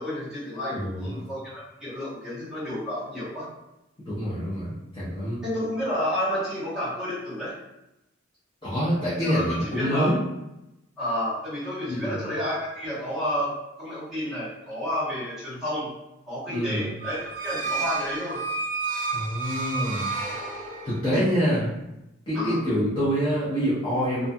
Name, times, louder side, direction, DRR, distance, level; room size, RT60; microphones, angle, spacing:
voice 1, 0.0-3.5 5.4-7.5 9.2-9.4 9.7-10.1 11.0-15.9 16.3-18.4 21.1-21.2 22.3-22.6, equal, ahead, -10 dB, 1.0 m, -30 dB
voice 2, 0.7-1.1 4.1-5.4 8.6-10.2 11.9-12.2 16.5-16.9 19.1-20.1 20.8-21.7 22.3-24.3, equal, 25° left, -11 dB, 0.7 m, -26 dB
sound 1, 17.0-21.1, right 4 dB, 40° right, 0.5 m, -31 dB
2.5 x 2.2 x 2.6 m, 0.91 s
head